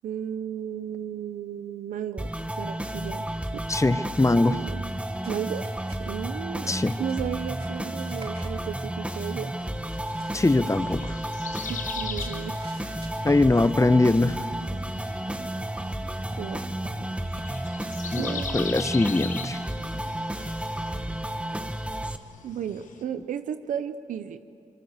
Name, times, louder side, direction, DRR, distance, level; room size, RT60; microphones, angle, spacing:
voice 1, 0.0-2.3 2.6-3.3 3.5-3.6 4.4-4.8 5.3-5.7 6.0-9.5 11.7-12.6 16.4-16.6 18.2-18.9 22.4-24.4, right 9 dB, 85° right, 10 dB, 0.7 m, -34 dB
sound 1, 2.2-22.2, right 1 dB, 10° right, 1.6 m, -32 dB
voice 2, 3.7-4.6 6.7-7.0 10.3-11.2 13.2-14.4 18.1-19.6, left 2 dB, 25° left, 14 dB, 1.0 m, -22 dB
sound 2, 4.6-21.4, right 2 dB, 50° right, 6.4 m, -49 dB
sound 3, 9.1-23.0, left 6 dB, 80° left, 1.5 m, -41 dB
26.0 x 22.5 x 8.1 m, 2.5 s
supercardioid pair, 40°, 13 cm